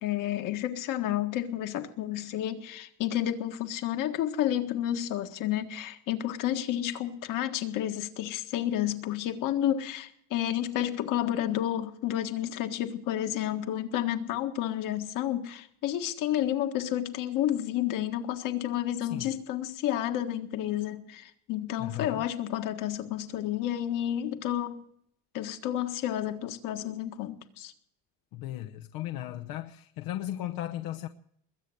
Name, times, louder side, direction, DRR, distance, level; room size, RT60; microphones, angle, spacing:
voice 1, 0.0-24.8 25.3-27.7, left 12 dB, 65° left, 7 dB, 1.7 m, -31 dB
voice 2, 21.8-22.3 28.3-31.1, left 13 dB, 90° left, 6 dB, 0.9 m, -36 dB
21.5 x 8.6 x 7.9 m, 0.70 s
cardioid pair, 160°, 34 cm